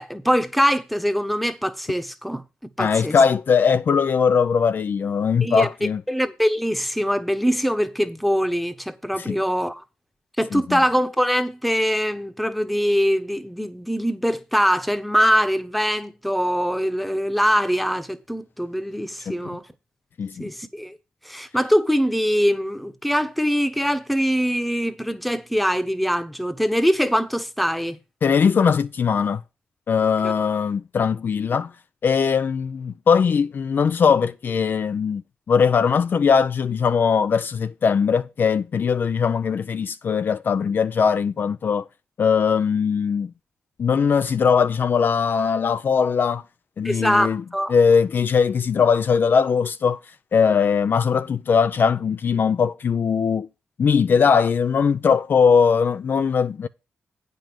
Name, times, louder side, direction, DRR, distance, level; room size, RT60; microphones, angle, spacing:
voice 1, 0.0-2.4 2.8-3.2 5.4-9.8 10.4-19.6 20.4-21.0 21.2-28.0 30.2-30.3 46.8-47.7, equal, ahead, 1.0 m, -23 dB
voice 2, 2.8-6.0 9.2-9.4 10.5-10.8 19.3-19.4 20.2-20.4 28.2-29.4 29.9-31.7 32.0-35.2 35.5-41.8 42.2-43.3 43.8-46.4 46.8-47.4 47.7-50.0 50.3-53.5 53.8-56.7, left 6 dB, 55° left, 0.4 m, -20 dB
9.0 x 5.3 x 6.0 m
cardioid pair, 80°, 4 cm